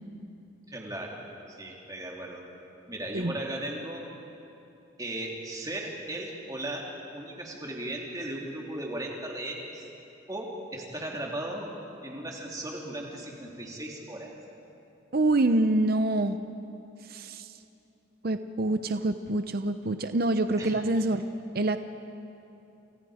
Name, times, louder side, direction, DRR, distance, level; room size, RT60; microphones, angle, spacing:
voice 1, 0.7-1.2 1.5-2.4 2.9-4.0 5.0-9.9 10.3-11.7 12.0-14.3 20.6-20.8, right 1 dB, 20° right, -1 dB, 3.1 m, -37 dB
voice 2, 15.1-16.4 17.1-17.5 18.2-21.2 21.5-21.8, right 2 dB, 50° right, 9 dB, 0.7 m, -26 dB
29.0 x 28.0 x 5.0 m, 2.8 s
head